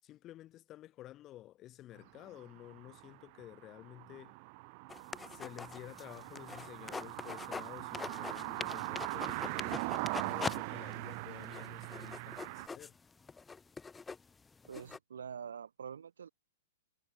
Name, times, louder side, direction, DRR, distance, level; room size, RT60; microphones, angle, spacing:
voice 1, 0.0-4.4 5.3-13.0, left 14 dB, 30° left, 7.7 m, -52 dB
sound 1, 2.0-12.7, right 30 dB, 45° right, 0.4 m, -41 dB
sound 2, 4.9-7.7 7.9-10.6 10.9-11.0 11.4-15.0, left 4 dB, 10° left, 0.6 m, -43 dB
voice 2, 14.7-16.3, right 7 dB, 75° right, 5.8 m, -45 dB
hypercardioid pair, 115°, 0 cm